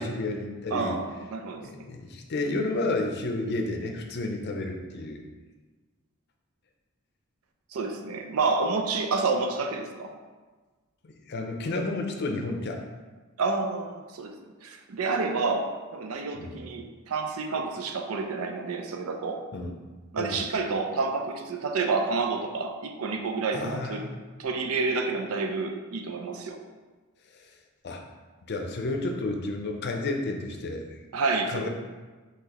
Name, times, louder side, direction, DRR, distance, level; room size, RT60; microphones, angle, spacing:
voice 1, 0.0-1.0 1.6-5.2 11.0-12.8 16.4-16.6 19.5-19.7 20.2-20.4 23.5-24.1 27.4-27.5 27.8-28.1 28.5-31.0 31.5-31.7, left 2 dB, 50° left, 3 dB, 0.5 m, -31 dB
voice 2, 0.7-1.7 7.7-10.1 13.4-19.5 20.1-24.1 24.4-26.6 31.1-31.7, right 4 dB, 85° right, 4 dB, 0.5 m, -29 dB
5.9 x 2.9 x 2.9 m, 1.3 s
head